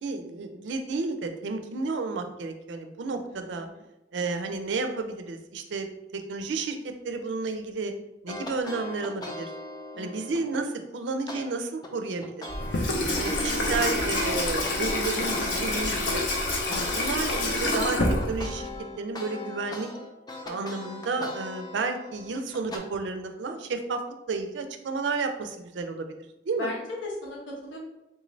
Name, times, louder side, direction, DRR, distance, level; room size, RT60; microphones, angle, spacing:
voice 1, 0.0-3.7 4.1-6.8 7.0-7.9 8.2-9.5 10.0-12.5 13.0-16.3 16.7-18.7 19.0-19.9 20.4-24.0 24.3-26.1 26.5-26.7, right 3 dB, 75° right, 6 dB, 0.4 m, -31 dB
voice 2, 3.3-3.8 9.9-10.2 13.3-13.8 20.5-20.6 26.6-27.8, left 2 dB, 90° left, -3 dB, 1.1 m, -38 dB
sound 1, 8.3-10.6 11.3-11.4 11.8-17.5 17.8-22.8, left 1 dB, 20° left, 0.4 m, -39 dB
Water tap faucet / Sink (filling or washing), 12.5-18.8, left 2 dB, 70° left, 0.7 m, -27 dB
3.7 x 2.5 x 3.1 m, 0.95 s
head